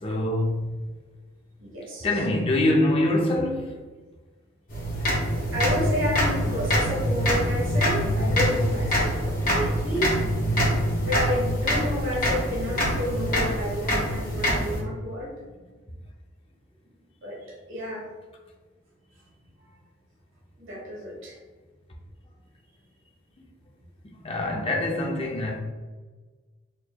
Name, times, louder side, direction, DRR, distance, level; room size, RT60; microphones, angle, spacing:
voice 1, 0.0-0.9 2.0-3.7 24.2-25.6, left 1 dB, 30° left, 0.5 m, -24 dB
voice 2, 1.6-2.1 5.5-10.1 11.0-15.3 17.2-17.4 17.7-18.0 20.6-21.4, left 1 dB, 80° right, 1.0 m, -30 dB
sound 1, 4.7-14.8, equal, 45° left, 1.1 m, -25 dB
4.4 x 3.0 x 2.2 m
head